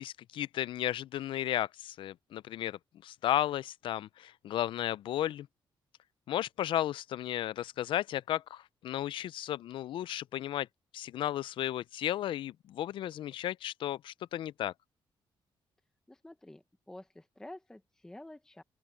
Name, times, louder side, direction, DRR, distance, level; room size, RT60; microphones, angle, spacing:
voice 1, 0.0-5.5 6.3-10.7 10.9-14.7, left 12 dB, 65° left, 0.4 m, -34 dB
voice 2, 16.1-18.6, left 1 dB, 5° left, 0.8 m, -49 dB
open air
cardioid pair, 170°, 9 cm